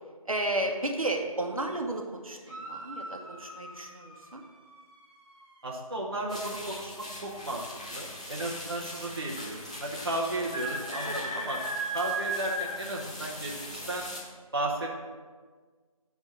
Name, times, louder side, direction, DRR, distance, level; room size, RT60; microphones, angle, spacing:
voice 1, 0.2-4.4 11.0-11.3, right 1 dB, 70° right, 2 dB, 1.1 m, -33 dB
sound 1, 2.4-5.7, right 1 dB, 10° right, 1.1 m, -46 dB
voice 2, 5.6-6.9 7.2-7.6 7.9-11.6 11.9-14.0 14.5-14.9, right 1 dB, 40° right, -2 dB, 0.9 m, -34 dB
sound 2, 6.3-14.2, right 1 dB, 10° left, 0.6 m, -37 dB
10.0 x 3.5 x 5.3 m, 1.5 s
figure-of-eight pair, 160°, 19 cm